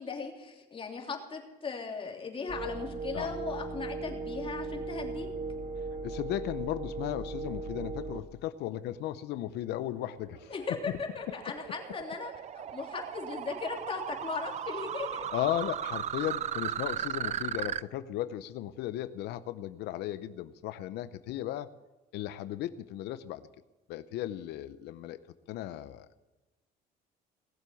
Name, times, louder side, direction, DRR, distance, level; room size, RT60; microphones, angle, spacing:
voice 1, 0.0-5.3 10.5-15.3, left 5 dB, 30° left, 1 dB, 3.1 m, -38 dB
sound 1, 2.5-8.2, right 3 dB, 65° right, 1.8 m, -37 dB
voice 2, 6.0-10.6 15.3-21.7 22.1-23.4 23.9-25.2 25.5-26.2, left 13 dB, 80° left, 13 dB, 0.8 m, -36 dB
sound 2, 9.8-17.8, right 10 dB, 45° right, 0.5 m, -37 dB
19.0 x 7.6 x 8.5 m, 1.1 s
cardioid pair, 110°, 17 cm